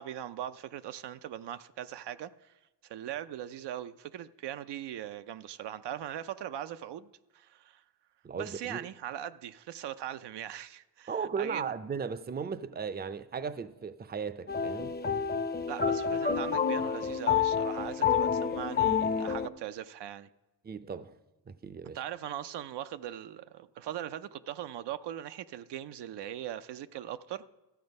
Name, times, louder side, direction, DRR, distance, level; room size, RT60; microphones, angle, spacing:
voice 1, 0.0-2.5 2.8-7.1 7.3-7.8 8.4-11.7 15.7-20.3 21.9-27.5, right 11 dB, 70° right, 0.5 m, -40 dB
voice 2, 8.2-8.9 11.1-15.0 20.6-21.1 21.5-22.0, right 6 dB, 25° right, 0.5 m, -36 dB
sound 1, 14.5-19.5, left 7 dB, 25° left, 0.7 m, -29 dB
13.0 x 7.7 x 5.3 m
cardioid pair, 70°, 43 cm